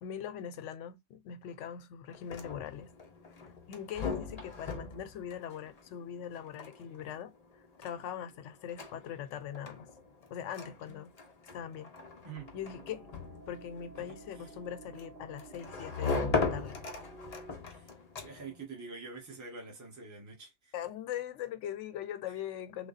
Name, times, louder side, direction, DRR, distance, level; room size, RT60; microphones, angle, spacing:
voice 1, 0.0-2.9 3.4-7.3 7.8-9.9 10.3-11.1 11.5-11.9 12.5-13.1 13.5-16.8 20.7-22.9, left 9 dB, 80° left, 0.9 m, -41 dB
sound 1, 2.1-18.6, left 4 dB, 40° left, 0.7 m, -40 dB
sound 2, 12.3-17.5, right 2 dB, 50° right, 1.6 m, -52 dB
voice 2, 18.2-20.7 22.3-22.4, right 4 dB, 15° right, 1.0 m, -46 dB
3.2 x 2.1 x 3.9 m
omnidirectional pair, 1.2 m